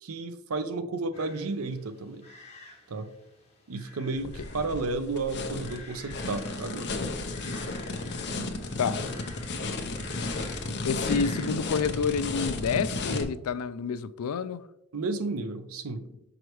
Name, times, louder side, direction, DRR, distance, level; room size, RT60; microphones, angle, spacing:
voice 1, 0.0-2.3 2.9-3.1 3.7-6.9 14.9-16.0, right 3 dB, 75° right, 0.6 m, -32 dB
sound 1, 1.1-11.5, left 2 dB, 30° left, 1.5 m, -50 dB
sound 2, 4.1-13.2, left 2 dB, 55° left, 0.8 m, -33 dB
voice 2, 10.8-14.6, left 6 dB, 85° left, 0.4 m, -29 dB
6.3 x 4.9 x 3.0 m
head